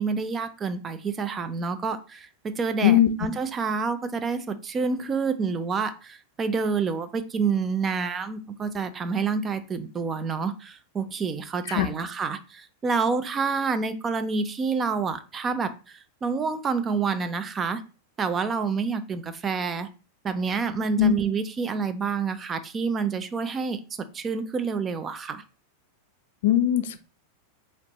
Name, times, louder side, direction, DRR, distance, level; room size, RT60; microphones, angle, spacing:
voice 1, 0.0-17.8 18.2-19.9 20.2-25.4, right 5 dB, 20° right, 10 dB, 0.4 m, -28 dB
voice 2, 26.4-27.0, left 12 dB, 55° left, 11 dB, 0.4 m, -19 dB
4.2 x 3.1 x 2.9 m, 0.34 s
figure-of-eight pair, 90°, 0 cm